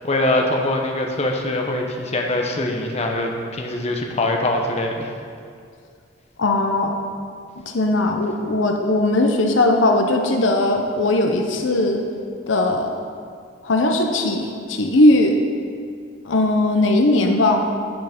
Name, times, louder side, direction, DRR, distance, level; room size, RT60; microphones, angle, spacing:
voice 1, 0.0-5.1, left 1 dB, 35° left, 2 dB, 0.9 m, -23 dB
voice 2, 6.4-6.9 7.7-12.0 12.5-13.0 13.6-15.3 16.2-17.7, left 2 dB, 70° left, 3 dB, 0.8 m, -18 dB
8.9 x 5.7 x 5.2 m, 2.2 s
head